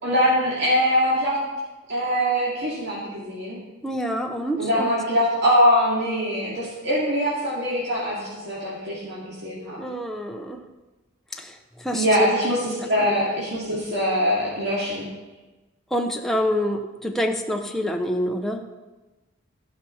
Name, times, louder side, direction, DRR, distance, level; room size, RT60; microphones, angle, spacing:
voice 1, 0.0-1.4 1.9-3.6 4.5-9.8 11.9-15.1, equal, 55° right, -8 dB, 2.4 m, -23 dB
voice 2, 3.8-4.9 9.6-10.6 11.3-12.1 15.9-18.6, equal, ahead, 2 dB, 0.6 m, -27 dB
15.0 x 5.7 x 5.7 m, 1.2 s
head